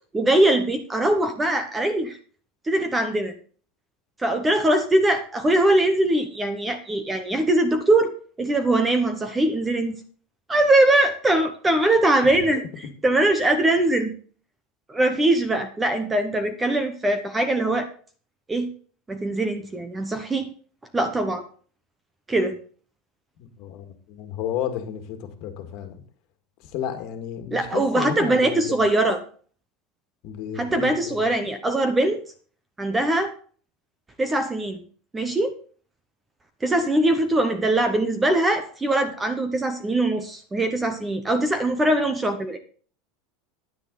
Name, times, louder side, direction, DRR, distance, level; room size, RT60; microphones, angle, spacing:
voice 1, 0.1-2.2 2.6-3.3 4.2-8.1 8.4-10.0 10.5-14.1 14.9-17.9 18.5-18.7 19.1-20.5 20.9-21.4 22.3-22.6 27.5-29.2 30.6-32.2 32.8-33.3 34.2-34.8 35.1-35.6 36.6-42.6, right 1 dB, 10° right, 9 dB, 0.8 m, -22 dB
voice 2, 23.4-25.9 26.7-28.8 30.2-31.2, left 9 dB, 45° left, 7 dB, 1.9 m, -32 dB
10.0 x 9.5 x 4.0 m, 0.42 s
supercardioid pair, 170°, 0 cm